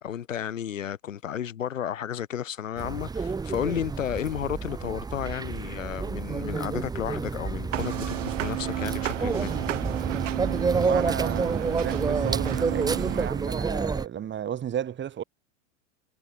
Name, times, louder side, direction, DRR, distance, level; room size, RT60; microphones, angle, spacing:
voice 1, 0.0-9.5, left 9 dB, 80° left, 4.3 m, -32 dB
sound 1, 2.8-14.1, right 4 dB, 10° right, 0.8 m, -29 dB
sound 2, 7.7-13.3, right 13 dB, 75° right, 6.6 m, -32 dB
voice 2, 10.7-15.2, right 9 dB, 30° right, 4.0 m, -33 dB
hypercardioid pair, 100°, 38 cm